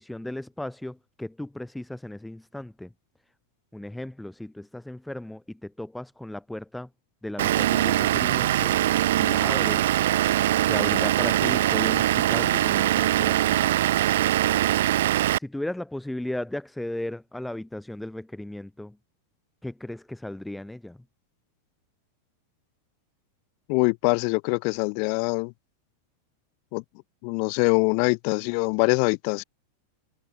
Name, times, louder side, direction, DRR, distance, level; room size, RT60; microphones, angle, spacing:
voice 1, 0.0-2.9 3.7-6.9 7.2-8.8 9.2-9.9 10.6-13.6 15.4-19.0 19.6-21.0, left 1 dB, 5° left, 6.1 m, -35 dB
Vehicle / Engine, 7.4-15.4, right 13 dB, 55° right, 2.0 m, -22 dB
voice 2, 23.7-25.5 26.7-26.8 27.2-29.4, left 40 dB or more, 45° left, 5.5 m, -23 dB
figure-of-eight pair, 90°, 0 cm